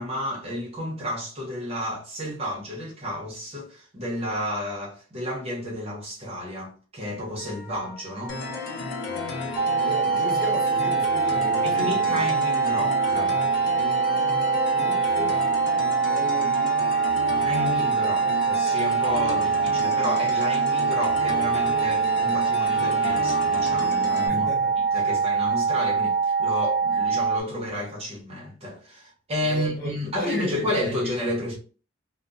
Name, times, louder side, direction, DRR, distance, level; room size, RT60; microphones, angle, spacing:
voice 1, 0.0-8.4 11.6-13.4 17.4-24.5 24.9-31.6, left 1 dB, 30° right, 0.8 m, -31 dB
sound 1, 7.4-27.1, left 3 dB, 15° left, 1.0 m, -46 dB
sound 2, 8.3-24.3, left 3 dB, 60° left, 0.6 m, -32 dB
sound 3, 9.6-27.4, right 5 dB, 55° right, 0.3 m, -24 dB
voice 2, 9.8-12.3 14.5-15.4 16.0-16.8 24.3-25.2 29.4-29.9 30.2-31.1, equal, 40° left, 1.4 m, -35 dB
2.8 x 2.1 x 2.4 m
head